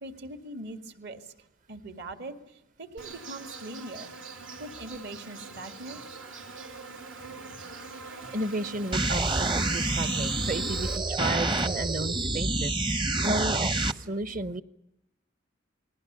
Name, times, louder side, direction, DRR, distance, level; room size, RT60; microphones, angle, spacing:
voice 1, 0.0-1.3 1.7-4.1 4.6-6.0, right 2 dB, 60° right, 7 dB, 2.1 m, -41 dB
Insect, 3.0-11.0, right 4 dB, 80° right, 3.0 m, -43 dB
voice 2, 8.3-14.6, right 2 dB, 45° right, 13 dB, 1.1 m, -33 dB
sound 1, 8.9-13.9, right 2 dB, 25° right, 0.9 m, -27 dB
28.5 x 21.0 x 6.8 m, 0.84 s
head